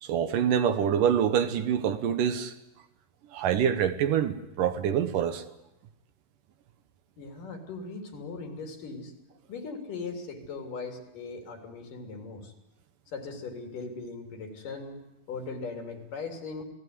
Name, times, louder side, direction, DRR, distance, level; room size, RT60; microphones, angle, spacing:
voice 1, 0.0-2.5 3.3-5.4, right 8 dB, 70° right, 2.6 m, -26 dB
voice 2, 7.2-9.1 9.5-12.5 13.1-16.6, left 4 dB, 65° left, 4.9 m, -39 dB
28.0 x 19.0 x 9.7 m
omnidirectional pair, 4.1 m